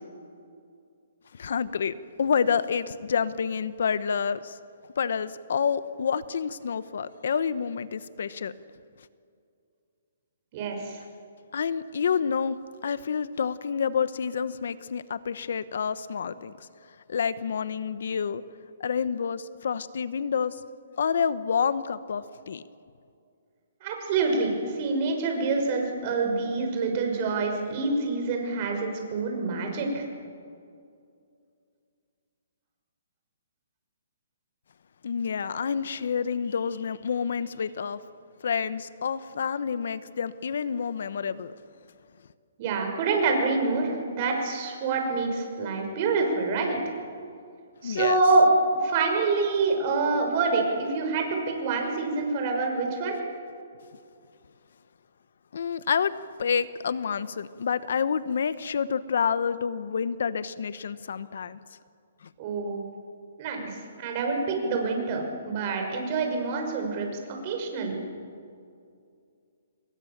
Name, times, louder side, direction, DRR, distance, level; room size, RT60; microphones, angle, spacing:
voice 1, 1.3-4.6 5.0-8.5 11.5-16.7 17.1-18.4 18.8-20.6 21.0-22.6 35.0-38.0 38.4-41.5 47.8-48.2 55.5-56.1 56.4-61.6 62.2-62.3, left 6 dB, 70° left, 15 dB, 1.0 m, -28 dB
voice 2, 10.5-11.0 23.8-30.1 42.6-46.9 47.8-53.2 62.4-62.8 63.4-67.1 67.4-68.0, right 3 dB, 35° right, 3 dB, 6.0 m, -26 dB
28.5 x 22.5 x 7.4 m, 2.4 s
hypercardioid pair, 155°, 0 cm